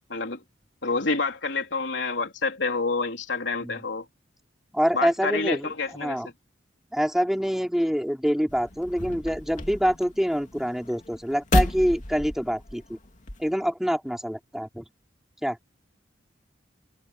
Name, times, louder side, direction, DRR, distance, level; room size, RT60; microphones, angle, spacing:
voice 1, 0.1-0.4 0.8-4.1 4.9-6.2, left 3 dB, 70° left, 3.9 m, -28 dB
voice 2, 4.7-6.3 6.9-13.0 13.4-14.8 15.4-15.6, equal, ahead, 3.7 m, -26 dB
sound 1, 8.5-13.5, left 1 dB, 45° left, 2.5 m, -31 dB
head